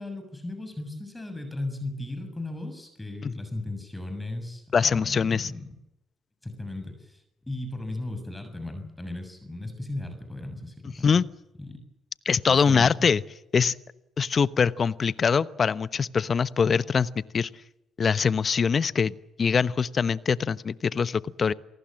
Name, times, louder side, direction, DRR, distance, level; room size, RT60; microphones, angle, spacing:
voice 1, 0.0-5.7 6.4-11.2 11.6-11.8 12.5-13.1, left 2 dB, 15° left, 7 dB, 7.0 m, -36 dB
voice 2, 4.7-5.5 11.0-11.2 12.2-13.2 13.5-13.7 14.2-17.5 18.0-21.5, left 6 dB, 45° left, 16 dB, 1.0 m, -23 dB
28.5 x 18.5 x 7.6 m, 0.88 s
supercardioid pair, 60°, 0 cm